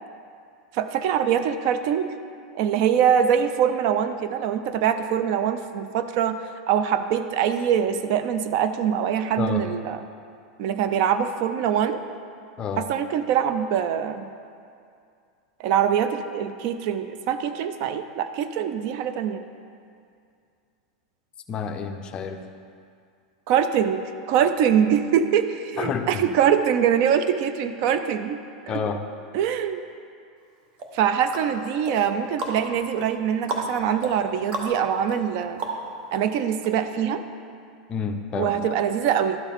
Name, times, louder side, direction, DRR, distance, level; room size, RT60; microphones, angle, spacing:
voice 1, 0.7-2.1 2.5-6.4 6.7-10.0 10.6-12.0 12.8-14.3 15.6-19.4 23.5-24.0 24.3-28.4 28.7-28.8 29.3-29.8 30.9-35.6 36.1-37.2 38.4-39.4, right 8 dB, 55° right, 10 dB, 0.4 m, -23 dB
voice 2, 21.5-22.4 25.8-26.3 28.7-29.0 37.9-38.6, left 6 dB, 30° left, 6 dB, 0.5 m, -29 dB
sound 1, 30.8-36.2 36.6-36.7, right 2 dB, 35° right, 1.0 m, -34 dB
12.0 x 4.5 x 3.5 m, 2.4 s
supercardioid pair, 140°, 3 cm